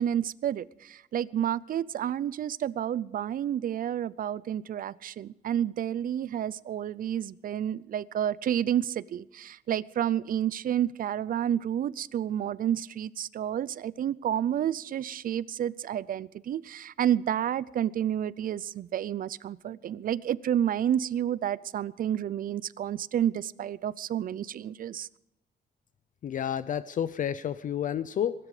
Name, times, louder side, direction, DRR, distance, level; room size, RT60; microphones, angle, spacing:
voice 1, 0.0-25.1, right 10 dB, 50° right, 21 dB, 0.5 m, -30 dB
voice 2, 26.2-28.3, left 9 dB, 45° left, 15 dB, 0.5 m, -30 dB
22.5 x 12.5 x 4.9 m, 0.91 s
wide cardioid pair, 180°, 18 cm